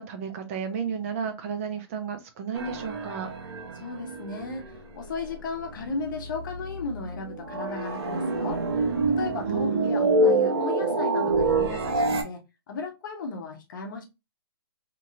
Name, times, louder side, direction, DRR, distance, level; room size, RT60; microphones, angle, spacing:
voice 1, 0.0-3.3 9.4-10.2, right 7 dB, 30° right, 0.5 m, -33 dB
sound 1, 2.5-5.3 5.6-12.2, right 2 dB, 75° right, 1.0 m, -27 dB
voice 2, 3.8-8.6 9.1-12.4 12.7-14.0, left 3 dB, 50° left, 0.8 m, -35 dB
2.9 x 2.8 x 2.4 m
hypercardioid pair, 150°, 13 cm